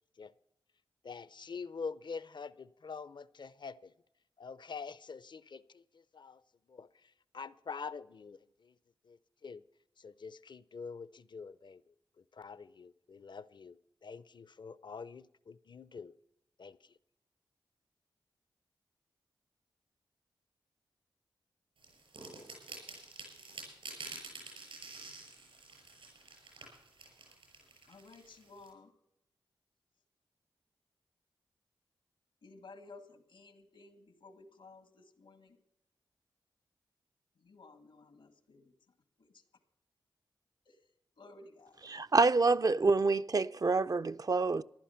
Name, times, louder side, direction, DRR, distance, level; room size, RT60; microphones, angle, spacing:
voice 1, 1.0-3.9 4.4-6.4 6.7-6.9 7.3-8.7 9.1-9.6 10.0-11.8 12.3-16.1 16.6-16.8, left 5 dB, 60° left, 0.6 m, -45 dB
sound 1, 21.8-28.7, right 3 dB, 85° right, 6.2 m, -49 dB
voice 2, 27.9-28.9 32.4-35.6 37.4-38.7 39.2-39.4 40.6-40.8 41.2-41.8, left 3 dB, 85° left, 1.8 m, -55 dB
voice 3, 41.9-44.6, right 3 dB, 45° right, 0.5 m, -27 dB
15.0 x 11.5 x 5.7 m
cardioid pair, 40°, 9 cm